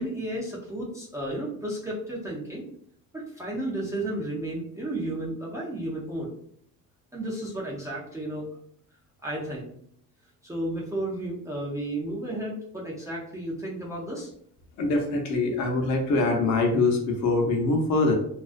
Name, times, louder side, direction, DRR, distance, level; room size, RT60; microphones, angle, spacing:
voice 1, 0.0-2.7 3.1-6.3 7.1-8.5 9.2-9.7 10.4-14.3, right 1 dB, 10° right, -6 dB, 0.4 m, -33 dB
voice 2, 14.8-18.2, left 3 dB, 55° left, 2 dB, 0.6 m, -23 dB
2.4 x 2.3 x 2.4 m, 0.65 s
cardioid pair, 140°, 35 cm